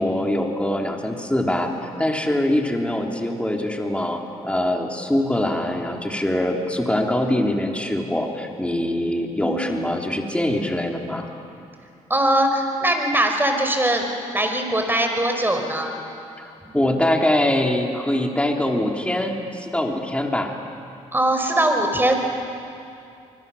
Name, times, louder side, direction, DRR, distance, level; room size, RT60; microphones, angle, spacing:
voice 1, 0.0-1.7 2.0-11.3 16.4-20.6, left 1 dB, 10° left, 1 dB, 3.3 m, -23 dB
voice 2, 9.4-9.8 12.1-14.0 14.3-15.9 16.7-16.8 21.1-22.1, right 1 dB, 15° right, 4 dB, 5.0 m, -21 dB
25.0 x 21.5 x 7.1 m, 2.6 s
supercardioid pair, 60°, 14 cm